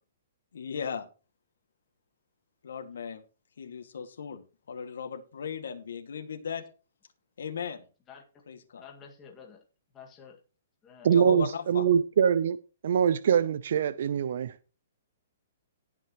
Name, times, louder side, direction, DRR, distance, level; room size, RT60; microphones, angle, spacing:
voice 1, 0.5-1.1 2.6-3.2 3.6-6.6 7.4-7.8 8.5-8.9 11.1-11.9, left 6 dB, 80° left, 2.1 m, -37 dB
voice 2, 8.5-9.6 9.9-10.4 10.8-11.1, left 6 dB, 15° left, 2.0 m, -50 dB
voice 3, 11.0-12.6 12.8-14.5, right 8 dB, 50° right, 0.6 m, -24 dB
18.5 x 6.2 x 3.1 m
hypercardioid pair, 175°, 0 cm